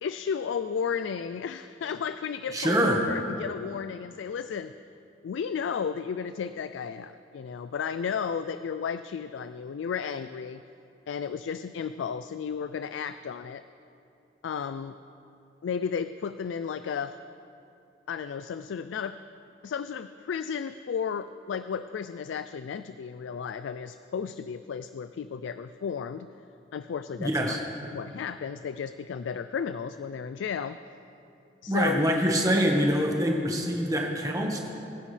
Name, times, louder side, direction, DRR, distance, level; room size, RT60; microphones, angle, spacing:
voice 1, 0.0-4.7 5.2-10.6 11.1-13.6 14.4-15.0 15.6-17.2 18.1-19.2 19.6-26.3 26.7-27.6 27.9-30.8 31.6-32.1, left 6 dB, 85° left, 12 dB, 0.3 m, -33 dB
voice 2, 2.5-3.0 27.2-27.6 31.7-34.6, equal, 20° right, 0 dB, 1.4 m, -25 dB
22.5 x 10.5 x 3.3 m, 2.8 s
head